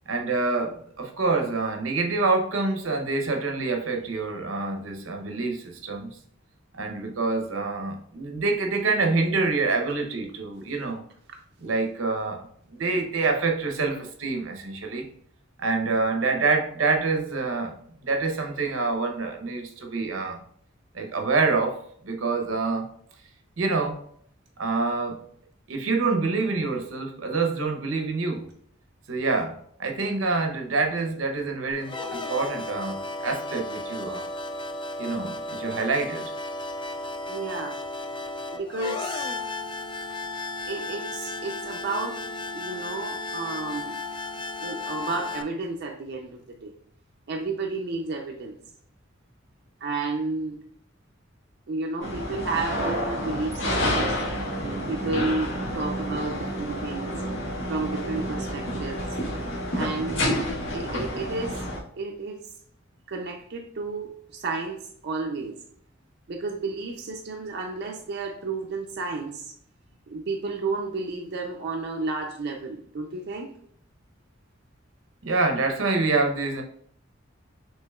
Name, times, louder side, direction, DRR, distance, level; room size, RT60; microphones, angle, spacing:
voice 1, 0.1-6.2 6.7-11.0 11.6-15.1 15.6-20.4 20.9-21.8 22.0-22.9 23.6-24.0 24.6-25.2 25.7-28.5 29.1-34.3 35.0-36.3 75.2-76.6, right 3 dB, 90° right, 4 dB, 0.8 m, -26 dB
sound 1, 31.8-45.4, left 2 dB, 25° left, 0.3 m, -34 dB
voice 2, 37.3-37.8 38.5-39.3 40.7-42.2 42.5-44.0 44.6-46.7 47.3-48.6 49.8-50.6 51.7-54.1 54.9-57.1 57.7-59.0 59.7-60.3 60.7-61.6 62.0-62.4 63.1-65.6 66.3-69.5 70.1-73.5, right 3 dB, 55° right, 2 dB, 0.5 m, -32 dB
sound 2, 52.0-61.8, equal, 70° left, 1.6 m, -29 dB
6.4 x 3.0 x 2.3 m, 0.64 s
head